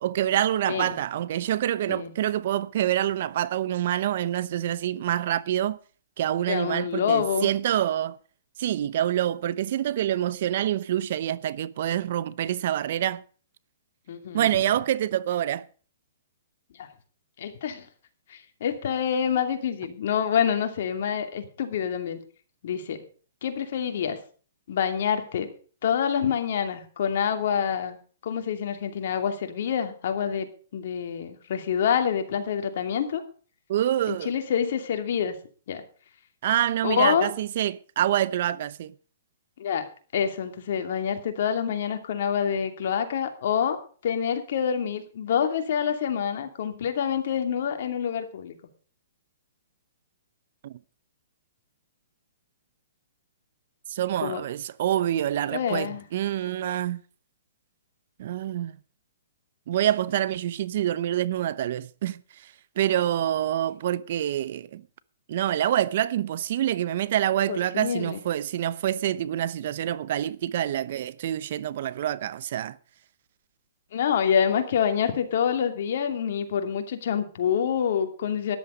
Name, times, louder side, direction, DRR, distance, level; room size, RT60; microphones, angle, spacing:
voice 1, 0.0-5.8 6.2-8.2 8.6-13.2 14.3-15.6 33.7-34.3 36.4-38.9 50.6-50.7 53.9-57.0 58.2-58.7 59.7-62.2 62.8-64.8 65.3-72.8, right 11 dB, 55° right, 0.8 m, -26 dB
voice 2, 6.5-7.5 14.1-14.5 16.8-16.9 17.4-17.9 18.3-22.2 22.6-23.0 23.4-24.2 24.7-25.5 25.8-28.0 28.2-33.2 34.1-35.4 35.7-35.8 36.8-37.3 39.6-39.9 40.1-43.8 44.0-48.5 54.2-54.4 55.5-56.0 67.5-68.2 73.9-78.6, left 8 dB, 60° left, 2.7 m, -27 dB
13.5 x 11.0 x 5.2 m
hypercardioid pair, 140°, 0 cm